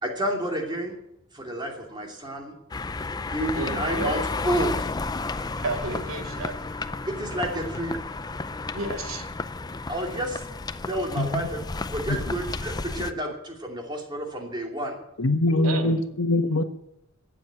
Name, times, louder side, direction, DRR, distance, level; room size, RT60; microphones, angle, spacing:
voice 1, 0.0-0.9 1.3-2.5 3.3-4.8 7.1-8.0 9.9-10.4 10.8-15.0, right 1 dB, 20° right, 2.7 m, -30 dB
sound 1, 2.7-13.1, left 3 dB, 20° left, 0.5 m, -32 dB
voice 2, 3.5-4.1 5.6-6.8 8.7-9.3 15.6-16.0, right 2 dB, 80° right, 2.5 m, -32 dB
voice 3, 15.2-16.6, left 2 dB, 75° left, 1.3 m, -23 dB
17.5 x 7.6 x 8.8 m
head